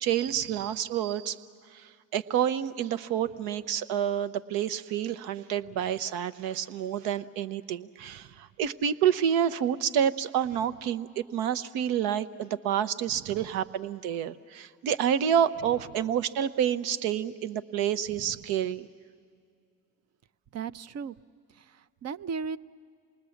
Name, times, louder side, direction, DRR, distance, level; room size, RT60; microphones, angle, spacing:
voice 1, 0.0-1.4 1.7-18.9, right 9 dB, 75° right, 13 dB, 0.8 m, -28 dB
voice 2, 13.1-13.4 18.2-18.4 20.5-21.2 21.5-22.6, right 6 dB, 45° right, 15 dB, 0.6 m, -37 dB
27.0 x 19.5 x 7.1 m, 2.3 s
supercardioid pair, 65°, 37 cm